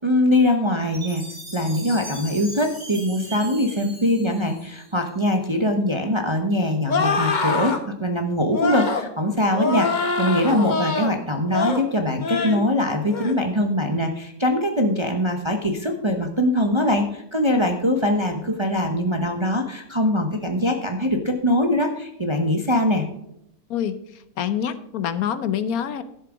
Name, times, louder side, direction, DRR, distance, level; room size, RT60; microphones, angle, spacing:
voice 1, 0.0-1.2 1.5-23.1, left 1 dB, 25° right, 4 dB, 0.7 m, -22 dB
Chime, 0.9-5.2, right 1 dB, 40° right, 4.2 m, -39 dB
sound 1, 6.9-7.8 8.5-9.1 9.5-11.1 11.5-11.8 12.2-12.6 13.0-13.4, left 4 dB, 35° left, 1.0 m, -24 dB
voice 2, 23.7-26.0, left 9 dB, 70° left, 12 dB, 1.2 m, -26 dB
11.5 x 7.2 x 4.9 m, 0.79 s
omnidirectional pair, 1.6 m